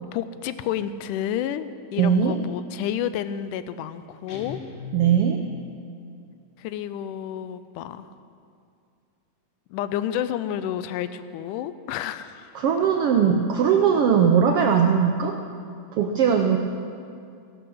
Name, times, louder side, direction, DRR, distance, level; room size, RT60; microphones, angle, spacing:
voice 1, 0.1-4.6 6.6-8.1 9.7-12.6, left 10 dB, 90° left, 13 dB, 2.1 m, -30 dB
voice 2, 2.0-2.4 4.9-5.4 12.5-15.4 15.9-16.6, right 7 dB, 85° right, 4 dB, 1.3 m, -20 dB
Guitar, 4.3-5.5, left 8 dB, 65° left, 2.7 m, -38 dB
16.0 x 11.5 x 6.3 m, 2.4 s
omnidirectional pair, 3.6 m